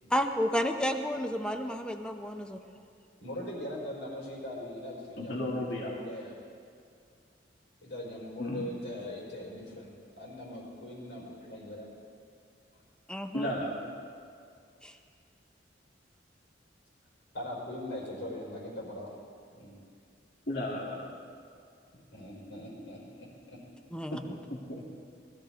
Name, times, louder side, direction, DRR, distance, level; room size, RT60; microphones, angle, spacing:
voice 1, 0.1-2.6 13.1-13.5 14.8-14.9 23.9-24.2, equal, 5° left, 5 dB, 0.7 m, -31 dB
voice 2, 3.2-6.3 7.8-9.9 10.2-11.9 12.7-12.8 13.5-13.7 17.3-19.1 19.5-19.7 22.1-23.0 23.5-23.6, left 1 dB, 85° left, -4 dB, 4.8 m, -41 dB
voice 3, 5.2-5.9 8.4-8.7 13.3-13.8 20.5-21.1 24.1-24.9, left 1 dB, 60° left, -3 dB, 1.9 m, -34 dB
20.5 x 14.0 x 3.8 m, 2.3 s
head